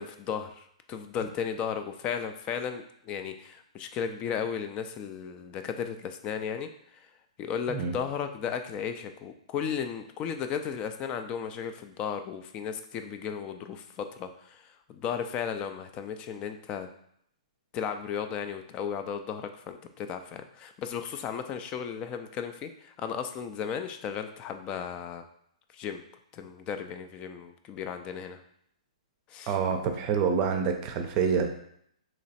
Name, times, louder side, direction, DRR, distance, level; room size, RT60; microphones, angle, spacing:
voice 1, 0.0-7.0 7.4-16.9 17.7-25.2 25.7-26.0 26.3-28.4 29.3-29.5, left 7 dB, 25° left, 8 dB, 0.4 m, -35 dB
voice 2, 29.5-31.5, right 6 dB, 35° right, 5 dB, 0.5 m, -27 dB
3.1 x 3.0 x 4.1 m, 0.70 s
hypercardioid pair, 130°, 4 cm